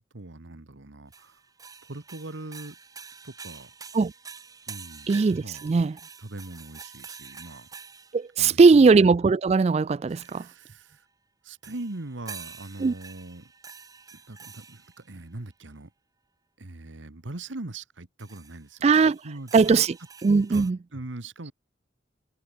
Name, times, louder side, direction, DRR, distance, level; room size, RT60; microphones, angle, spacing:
voice 1, 0.0-1.4 1.8-2.8 3.2-3.7 4.7-5.7 6.0-7.7 8.4-8.9 10.1-11.1 11.4-13.5 14.1-15.9 16.6-19.8 20.5-21.5, right 2 dB, 90° right, 1.5 m, -41 dB
sound 1, 1.1-8.3 10.1-10.7 11.6-15.1 18.2-18.6 18.9-20.7, right 5 dB, 20° right, 1.3 m, -46 dB
voice 2, 5.1-6.0 8.1-10.5 12.8-12.9 18.8-19.2 19.5-19.9 20.2-20.8, right 4 dB, 35° right, 0.3 m, -19 dB
head